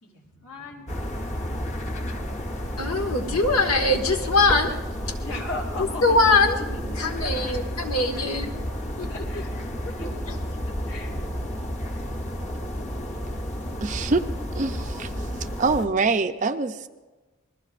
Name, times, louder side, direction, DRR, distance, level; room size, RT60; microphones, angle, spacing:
voice 1, 0.0-1.6 5.2-7.5 9.1-10.2 10.6-11.2, left 2 dB, 70° left, 0 dB, 3.2 m, -38 dB
sound 1, 0.9-15.9, equal, 35° left, 1.1 m, -31 dB
voice 2, 2.8-4.8 5.8-6.6 7.0-8.5 9.0-9.1, left 3 dB, 85° left, 3 dB, 1.7 m, -22 dB
voice 3, 13.8-14.2 14.5-15.1 15.6-16.9, right 4 dB, 35° right, 8 dB, 0.5 m, -24 dB
27.5 x 20.5 x 2.5 m, 1.2 s
head